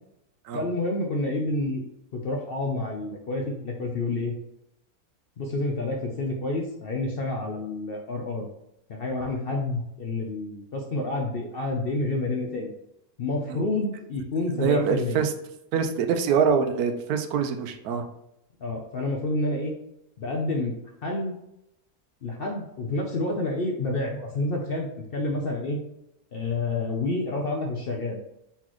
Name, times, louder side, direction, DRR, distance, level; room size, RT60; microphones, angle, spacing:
voice 1, 0.5-1.8 2.1-4.3 5.4-8.5 8.9-12.7 13.2-15.2 18.6-19.7 20.2-21.3 22.2-25.8 26.3-28.2, left 2 dB, 60° left, 1 dB, 0.6 m, -29 dB
voice 2, 14.5-15.3 15.7-18.0, right 6 dB, 90° right, 7 dB, 1.1 m, -24 dB
4.1 x 4.0 x 3.0 m, 0.83 s
omnidirectional pair, 1.6 m